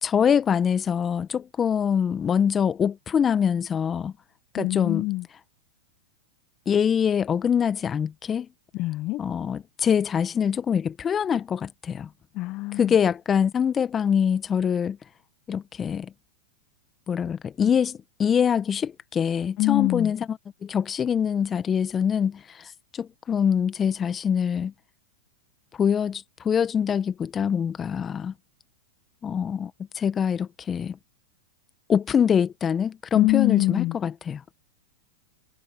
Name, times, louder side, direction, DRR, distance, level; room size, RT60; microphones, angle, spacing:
voice 1, 0.0-4.1 4.5-5.0 6.7-8.5 9.2-12.1 12.8-15.0 15.5-16.1 17.1-22.7 22.9-24.7 25.8-28.3 29.2-31.0 31.9-34.4, left 7 dB, 25° left, 1.6 m, -24 dB
voice 2, 4.5-5.2 8.7-9.2 12.3-13.0 19.6-20.1 33.1-34.0, left 21 dB, 45° left, 1.0 m, -24 dB
hypercardioid pair, 100°, 0 cm